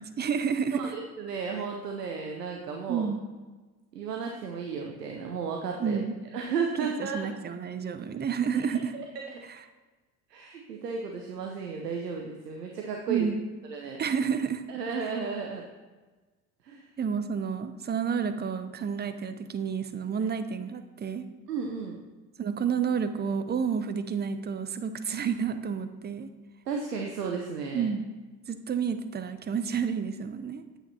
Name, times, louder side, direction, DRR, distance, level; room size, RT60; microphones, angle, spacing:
voice 1, 0.0-0.9 2.9-3.2 5.8-6.1 7.0-8.9 13.1-13.4 14.0-14.6 17.0-21.3 22.4-26.3 27.7-28.0 28.5-30.8, right 6 dB, 20° right, 10 dB, 0.7 m, -30 dB
voice 2, 0.7-3.1 3.9-6.0 6.3-7.3 8.5-8.6 8.9-9.4 10.3-13.3 13.7-14.0 14.7-15.7 16.6-16.9 20.2-20.3 21.5-22.0 26.7-27.9, right 5 dB, 85° right, 2 dB, 0.8 m, -34 dB
8.9 x 8.1 x 2.8 m, 1.3 s
figure-of-eight pair, 60°, 47 cm